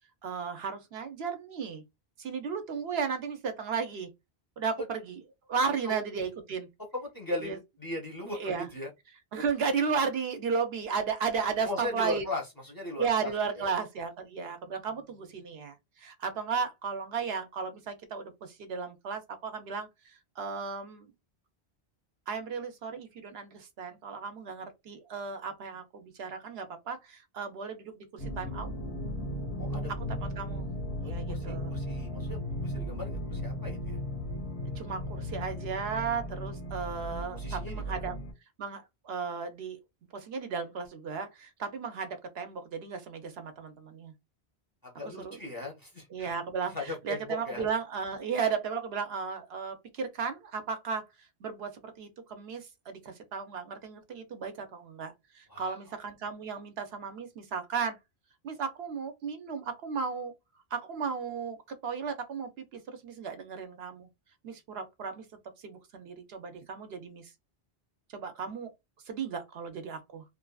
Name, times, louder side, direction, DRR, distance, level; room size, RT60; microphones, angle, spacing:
voice 1, 0.2-1.8 2.2-4.1 4.6-5.2 5.5-6.7 7.4-7.6 8.4-8.7 9.3-12.2 13.0-19.9 20.4-21.1 22.3-28.7 30.1-30.7 31.1-31.7 34.8-38.1 38.6-39.8 40.1-44.1 45.0-45.4 46.1-51.0 51.4-58.0 58.4-60.3 60.7-61.6 61.8-64.1 64.4-65.2 65.6-67.3 68.1-68.7 69.1-70.2, right 5 dB, 70° right, 0.9 m, -34 dB
voice 2, 6.9-8.9 11.6-13.7 29.6-29.9 31.0-34.0 37.3-37.9 44.8-46.3 46.7-47.6 55.5-55.8, left 2 dB, 20° left, 0.7 m, -38 dB
sound 1, 28.2-38.3, equal, 90° left, 1.1 m, -36 dB
2.6 x 2.5 x 2.3 m
omnidirectional pair, 1.1 m